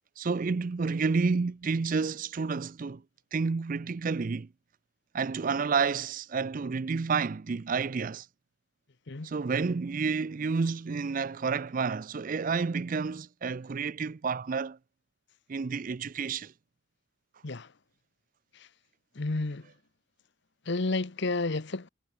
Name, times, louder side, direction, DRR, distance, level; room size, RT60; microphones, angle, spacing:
voice 1, 0.2-3.0 3.3-4.5 5.1-8.3 9.2-14.8 15.5-16.5, right 5 dB, 40° right, 0.4 m, -30 dB
voice 2, 19.2-19.6 20.7-21.9, left 3 dB, 55° left, 0.9 m, -30 dB
head